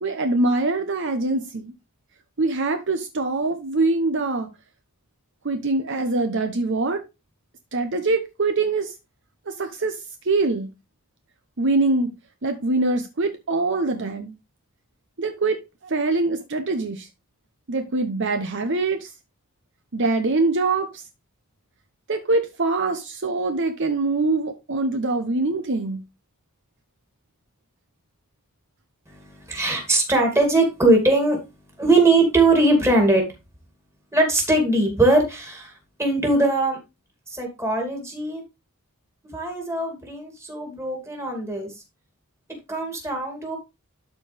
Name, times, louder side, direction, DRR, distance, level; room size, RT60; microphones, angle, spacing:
voice 1, 0.0-1.7 2.4-4.5 5.4-7.0 7.7-8.9 9.5-10.0 10.2-10.7 11.6-12.1 12.4-14.3 15.2-17.1 17.7-19.1 19.9-21.0 22.1-26.0, right 3 dB, 55° right, 0.9 m, -23 dB
voice 2, 29.1-31.4 31.8-33.3 34.1-35.7 36.0-36.8 37.3-38.4 39.3-41.7 42.7-43.6, right 2 dB, 10° right, 2.6 m, -20 dB
12.5 x 4.5 x 3.4 m
head